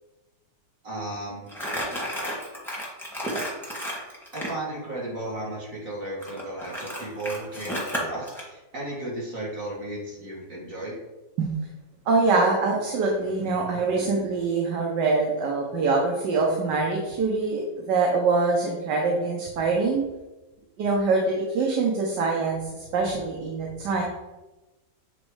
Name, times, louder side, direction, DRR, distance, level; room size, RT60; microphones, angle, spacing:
voice 1, 0.8-1.5 4.3-11.0, right 1 dB, 50° right, -5 dB, 2.2 m, -34 dB
Crumpling crinkling, 1.5-4.6 6.2-8.4, equal, ahead, 1.3 m, -32 dB
voice 2, 12.1-20.1 20.8-24.0, right 3 dB, 80° right, 0 dB, 1.6 m, -24 dB
8.5 x 3.1 x 4.8 m, 1.1 s
omnidirectional pair, 1.8 m